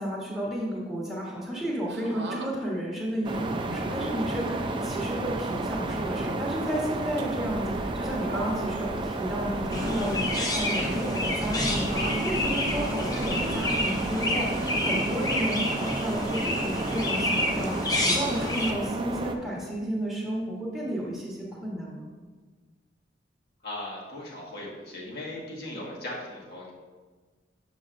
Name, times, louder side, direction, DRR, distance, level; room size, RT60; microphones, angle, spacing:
voice 1, 0.0-22.1, equal, ahead, -8 dB, 1.2 m, -32 dB
sound 1, 1.9-2.5 3.4-4.0 4.6-4.9 5.8-6.4 7.0-7.2 8.0-8.9 9.2-10.2 10.6-11.1 11.7-12.2 13.2-14.8 16.0-16.4 17.0-17.4 17.6-17.7 19.3-19.7 20.8-21.1, right 2 dB, 70° right, 0.7 m, -40 dB
sound 2, 3.2-19.4, right 2 dB, 30° right, 0.4 m, -32 dB
Chirp tweet, 9.7-18.7, left 1 dB, 20° left, 0.7 m, -29 dB
voice 2, 23.6-26.7, left 1 dB, 65° left, -4 dB, 1.6 m, -38 dB
7.0 x 6.4 x 2.5 m, 1.4 s
head